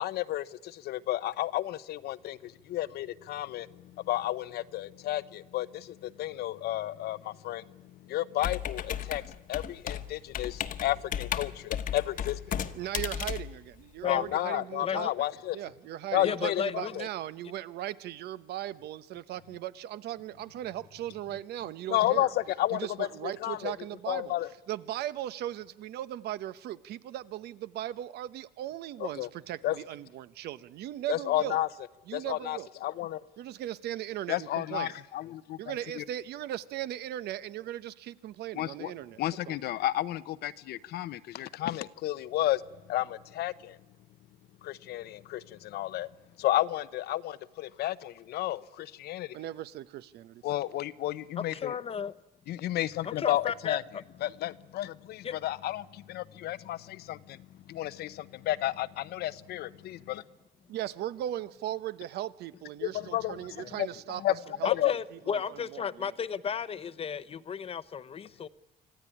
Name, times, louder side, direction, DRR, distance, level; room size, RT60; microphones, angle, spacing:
voice 1, 0.0-7.6 8.0-9.2 9.5-12.6 14.0-15.6 16.1-16.6 16.9-17.1 21.9-23.1 23.4-23.7 24.1-24.5 29.0-29.3 29.6-29.8 31.1-31.7 32.1-33.2 34.3-35.6 36.0-36.1 38.5-38.9 39.2-42.6 42.9-43.8 44.6-46.1 46.4-49.4 50.4-51.7 52.5-53.8 54.2-57.4 57.7-60.2 62.8-63.4 63.8-63.9 64.2-64.3 64.7-64.9, left 14 dB, 70° left, 0.8 m, -32 dB
Computer keyboard, 8.4-14.3, left 9 dB, 55° left, 1.2 m, -35 dB
voice 2, 12.7-15.1 15.5-22.3 22.7-24.3 24.7-31.6 32.1-32.7 33.4-34.9 35.6-39.5 49.3-50.4 60.7-64.2 64.6-66.2, right 13 dB, 75° right, 1.0 m, -38 dB
voice 3, 14.8-15.1 16.2-16.9 51.4-52.2 53.0-53.8 55.2-55.3 64.6-68.5, left 7 dB, 35° left, 0.8 m, -34 dB
26.0 x 15.0 x 9.9 m
cardioid pair, 110°, 17 cm